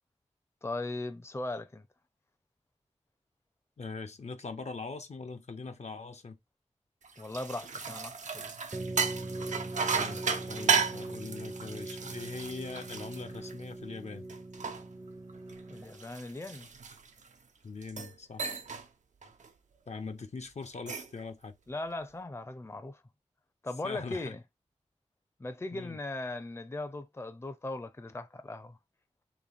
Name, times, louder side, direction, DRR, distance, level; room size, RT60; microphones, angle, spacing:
voice 1, 0.6-1.9 7.2-8.6 15.7-16.7 21.7-23.0 23.6-24.4 25.4-28.8, left 2 dB, 20° left, 0.5 m, -38 dB
voice 2, 3.8-6.4 9.9-14.3 17.6-18.5 19.9-21.6 23.8-24.4 25.7-26.0, left 4 dB, 65° left, 0.7 m, -42 dB
sound 1, 7.0-13.8 14.3-17.3 17.8-18.1 18.4-18.9 19.2-19.5 20.6-21.2, right 5 dB, 85° right, 0.6 m, -34 dB
sound 2, 8.7-16.2, right 2 dB, 30° right, 0.5 m, -41 dB
3.2 x 3.1 x 4.0 m
cardioid pair, 50°, 12 cm